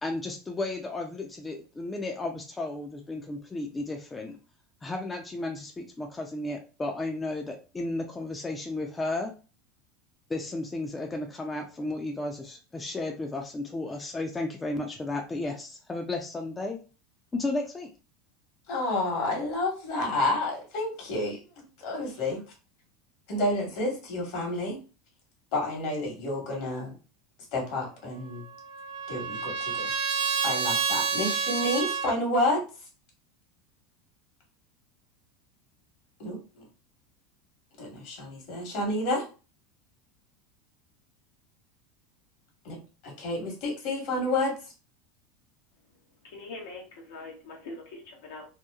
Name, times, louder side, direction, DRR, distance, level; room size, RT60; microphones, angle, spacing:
voice 1, 0.0-4.4 4.8-9.3 10.3-16.8 17.3-17.9, left 2 dB, 15° left, 2 dB, 0.4 m, -33 dB
voice 2, 18.7-22.4 23.3-24.8 25.5-26.9 27.5-28.4 29.1-29.9 30.4-32.6 36.2-36.6 37.8-39.2 42.6-44.5, left 2 dB, 65° left, 0 dB, 1.3 m, -30 dB
Trumpet, 28.3-32.1, right 6 dB, 70° right, 0.5 m, -29 dB
voice 3, 46.2-48.5, left 2 dB, 80° left, -1 dB, 0.8 m, -42 dB
2.9 x 2.1 x 2.3 m, 0.34 s
supercardioid pair, 105°, 0 cm